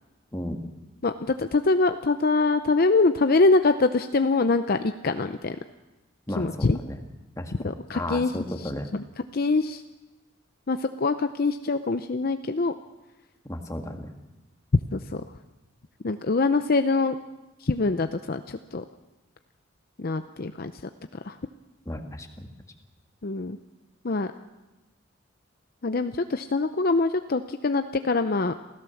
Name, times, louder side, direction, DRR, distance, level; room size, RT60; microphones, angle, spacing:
voice 1, 1.0-5.6 6.4-6.8 7.6-8.3 8.6-9.0 9.3-9.8 10.7-12.7 14.9-15.2 16.0-17.2 17.6-18.8 20.0-20.7 21.2-21.4 23.2-23.6 24.0-24.3 25.8-28.5, left 3 dB, 50° left, 9 dB, 0.6 m, -24 dB
voice 2, 6.3-7.0 7.4-8.9 13.5-14.1 21.9-22.5, left 1 dB, 15° left, 4 dB, 1.8 m, -34 dB
27.0 x 16.0 x 7.1 m, 1.1 s
head